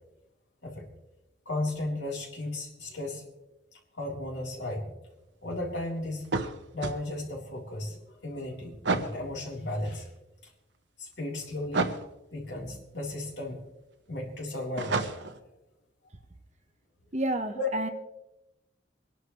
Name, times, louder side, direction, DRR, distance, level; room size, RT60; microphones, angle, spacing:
voice 1, 1.5-3.2 3.7-4.9 5.4-6.3 6.7-10.1 11.0-11.9 12.3-13.6 14.1-15.5 17.5-17.7, left 2 dB, 80° left, -1 dB, 3.7 m, -35 dB
sound 1, 6.2-7.0 8.8-9.2 11.7-12.1 14.8-15.4, right 3 dB, 75° right, 1.1 m, -29 dB
voice 2, 17.1-17.9, right 1 dB, 40° right, 7 dB, 1.1 m, -30 dB
24.0 x 11.5 x 3.2 m, 0.92 s
head